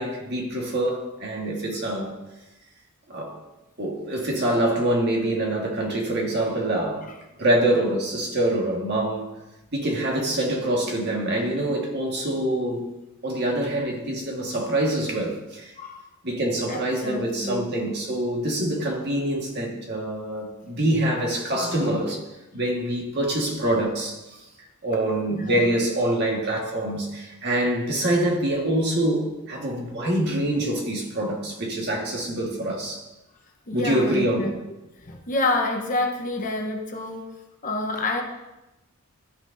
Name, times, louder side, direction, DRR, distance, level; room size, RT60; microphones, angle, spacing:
voice 1, 0.0-2.1 3.1-3.4 3.8-7.0 7.4-9.3 9.7-12.8 13.2-15.7 16.2-22.2 22.5-24.2 24.8-33.0 33.7-34.5, right 1 dB, 50° right, -1 dB, 1.7 m, -25 dB
voice 2, 15.8-16.1 16.7-17.7 21.5-22.0 25.3-25.8 33.7-34.5 35.0-37.2 37.6-38.2, left 2 dB, 40° left, 2 dB, 0.9 m, -28 dB
13.0 x 6.0 x 2.7 m, 0.99 s
head